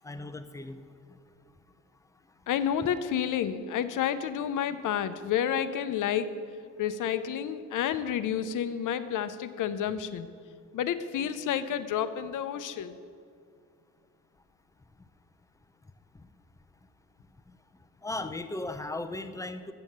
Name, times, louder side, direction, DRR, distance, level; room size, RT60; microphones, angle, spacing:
voice 1, 0.0-0.8 1.1-1.2 16.1-16.2 17.5-17.6 18.0-19.7, left 2 dB, 10° left, 10 dB, 0.4 m, -37 dB
voice 2, 2.5-6.3 6.8-10.3 10.7-13.0, left 9 dB, 85° left, 12 dB, 0.6 m, -30 dB
7.8 x 7.3 x 7.1 m, 2.2 s
cardioid pair, 135°, 31 cm